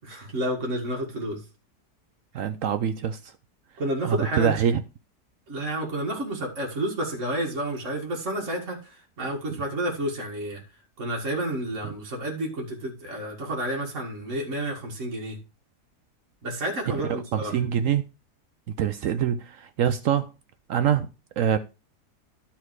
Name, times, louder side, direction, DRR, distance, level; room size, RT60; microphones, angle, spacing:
voice 1, 0.0-1.4 3.8-4.6 5.5-10.6 11.0-15.4 16.4-17.6, right 1 dB, 45° right, 2.1 m, -30 dB
voice 2, 2.3-3.2 4.0-4.8 17.3-18.0 18.8-20.3 20.7-21.1 21.4-21.6, right 9 dB, 65° right, 0.8 m, -24 dB
11.5 x 4.4 x 4.7 m
omnidirectional pair, 1.8 m